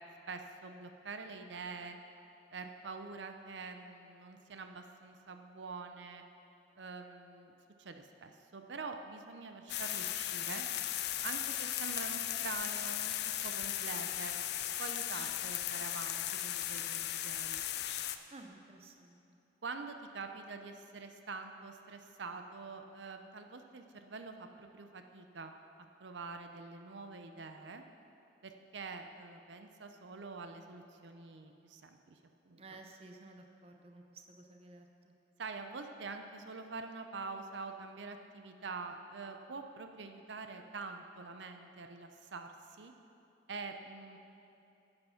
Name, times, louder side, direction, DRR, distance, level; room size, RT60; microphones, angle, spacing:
voice 1, 0.3-2.0 2.5-6.2 6.8-7.5 7.8-10.7 11.2-13.1 13.4-14.4 14.8-17.6 19.6-27.8 28.4-32.2 32.4-32.8 35.4-42.5 42.8-42.9 43.5-44.2, right 4 dB, 80° right, 6 dB, 0.6 m, -45 dB
sound 1, 9.7-18.2, left 12 dB, 60° left, 0.4 m, -37 dB
voice 2, 18.3-19.4 32.6-35.1, right 2 dB, 30° right, 4 dB, 0.6 m, -54 dB
10.0 x 7.9 x 5.7 m, 2.8 s
head